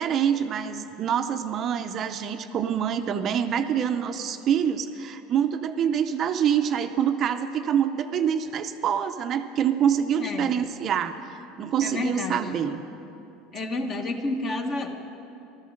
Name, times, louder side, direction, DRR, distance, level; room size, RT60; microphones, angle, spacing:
voice 1, 0.0-11.1 11.6-12.8, right 8 dB, 35° right, 8 dB, 0.6 m, -26 dB
voice 2, 10.2-10.5 11.8-12.4 13.5-14.9, left 2 dB, 30° left, 5 dB, 1.3 m, -29 dB
14.5 x 13.5 x 6.5 m, 2.7 s
cardioid pair, 145°, 0 cm